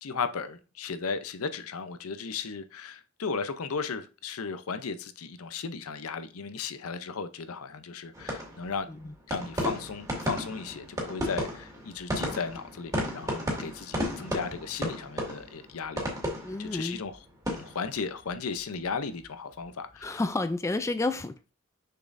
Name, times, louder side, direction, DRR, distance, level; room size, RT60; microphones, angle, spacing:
voice 1, 0.0-8.9 9.3-16.0 16.3-17.2 17.5-20.2, left 5 dB, 75° left, 0.6 m, -35 dB
sound 1, 8.1-19.3 19.5-20.0, equal, 15° right, 1.9 m, -35 dB
voice 2, 16.4-17.0 20.0-21.5, left 2 dB, 15° left, 0.3 m, -30 dB
6.6 x 6.2 x 2.6 m
head